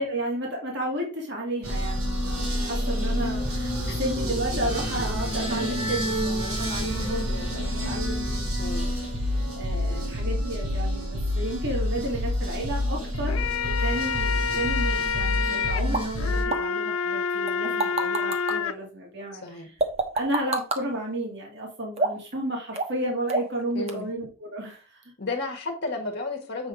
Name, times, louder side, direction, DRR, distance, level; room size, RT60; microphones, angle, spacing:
voice 1, 0.0-8.6 9.6-19.8 20.1-25.0, right 1 dB, 55° right, -1 dB, 2.4 m, -32 dB
sound 1, 1.6-16.4, left 1 dB, 85° right, 3.0 m, -28 dB
voice 2, 8.6-8.9 9.7-10.0 19.4-19.7 23.7-24.1 25.2-26.7, left 3 dB, 55° left, 1 dB, 1.4 m, -33 dB
sound 2, 13.1-18.7, left 6 dB, 70° left, 0.5 m, -28 dB
sound 3, 15.9-16.0 16.5-16.6 17.5-18.5 19.8-20.8 22.0-22.3 22.8-23.0 23.3-23.6 23.9-24.0, right 2 dB, 30° right, 1.2 m, -26 dB
7.8 x 5.6 x 3.8 m, 0.36 s
head